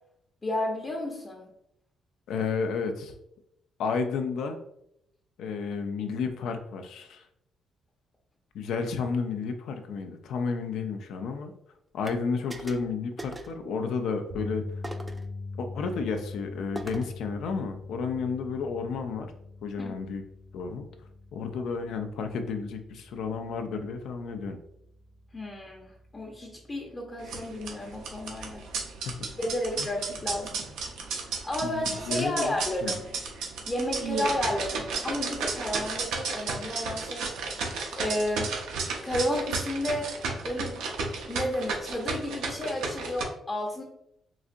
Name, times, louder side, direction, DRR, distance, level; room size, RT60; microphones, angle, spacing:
voice 1, 0.4-1.4 19.8-19.9 25.3-28.6 29.4-30.6 31.2-33.0 33.7-37.6 37.9-38.5 39.0-40.1 40.4-40.9 41.2-43.8, left 1 dB, 25° left, -1 dB, 0.7 m, -32 dB
voice 2, 2.3-3.1 3.8-4.6 5.4-7.2 8.5-11.5 11.9-14.6 15.6-19.3 19.6-20.2 20.5-20.9 21.3-24.6 29.1-29.2 29.8-29.9 31.6-32.5 32.8-32.9, left 5 dB, 80° left, 6 dB, 0.4 m, -31 dB
sound 1, 12.0-12.2 12.5-12.9 13.2-13.6 14.8-15.3 16.7-17.2, right 2 dB, 20° right, 0.4 m, -40 dB
sound 2, 14.3-26.6 26.9-27.2 29.3-29.4, left 3 dB, 50° right, 0.8 m, -43 dB
sound 3, 27.2-43.2, right 4 dB, 90° right, 0.6 m, -33 dB
3.9 x 2.4 x 2.5 m, 0.76 s
cardioid pair, 90°, 0 cm